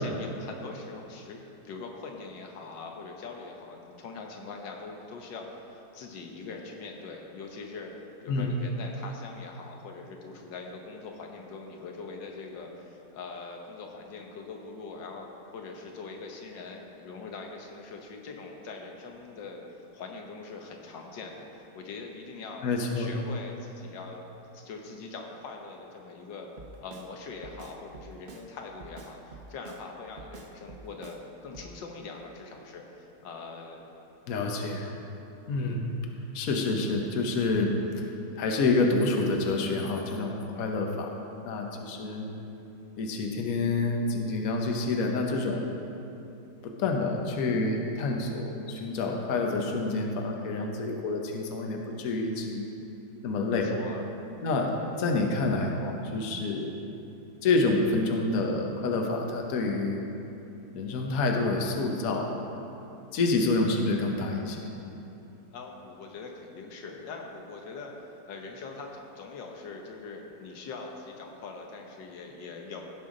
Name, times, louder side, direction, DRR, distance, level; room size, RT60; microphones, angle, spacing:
voice 1, 0.0-1.4 1.6-7.9 8.2-22.6 22.9-24.3 24.5-26.5 26.8-33.8 35.5-35.9 53.5-54.1 54.8-54.9 65.5-67.9 68.2-72.9, left 4 dB, 80° left, 2 dB, 1.6 m, -42 dB
voice 2, 8.3-8.6 22.6-23.1 34.3-34.9 35.5-35.9 36.3-38.1 38.4-41.2 41.4-42.3 43.0-45.7 46.8-52.7 53.2-53.7 54.4-56.8 57.4-60.0 60.7-62.3 63.1-64.6, left 3 dB, 60° left, 2 dB, 1.2 m, -28 dB
Drum kit, 26.6-27.1 27.4-28.5 28.8-29.8 30.2-31.2 31.5-31.7, right 3 dB, 80° right, 0.4 m, -46 dB
16.5 x 5.6 x 3.8 m, 2.8 s
omnidirectional pair, 1.9 m